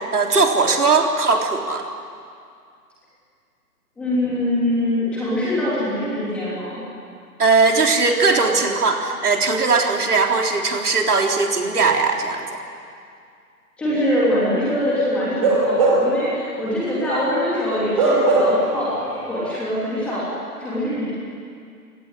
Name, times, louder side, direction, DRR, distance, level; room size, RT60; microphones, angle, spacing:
voice 1, 0.0-1.8 7.4-12.5, right 4 dB, 70° right, 2 dB, 3.8 m, -19 dB
voice 2, 4.0-6.8 13.8-18.9 19.3-20.2 20.6-21.1, left 1 dB, ahead, -9 dB, 3.2 m, -23 dB
Bark / Livestock farm animals working animals, 15.3-16.3 16.7-16.8 18.0-18.8 19.1-19.3, right 2 dB, 20° right, 4.4 m, -18 dB
30.0 x 18.0 x 9.9 m, 2.3 s
hypercardioid pair, 180°, 48 cm